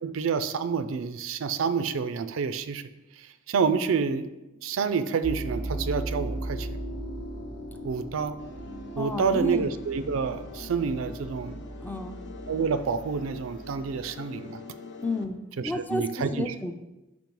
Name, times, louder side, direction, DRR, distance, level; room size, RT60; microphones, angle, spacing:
voice 1, 0.0-2.8 3.2-4.3 4.6-6.7 7.8-8.4 9.0-11.7 12.5-14.6 15.6-16.5, right 5 dB, 80° right, 11 dB, 0.4 m, -28 dB
sound 1, 5.2-13.9, right 1 dB, 80° left, 1.4 m, -37 dB
sound 2, 8.4-15.3, left 4 dB, 60° left, 0.6 m, -45 dB
voice 2, 9.0-9.7 11.8-12.2 15.0-16.7, left 1 dB, 10° left, 6 dB, 0.4 m, -31 dB
5.3 x 5.2 x 4.6 m, 1.0 s
head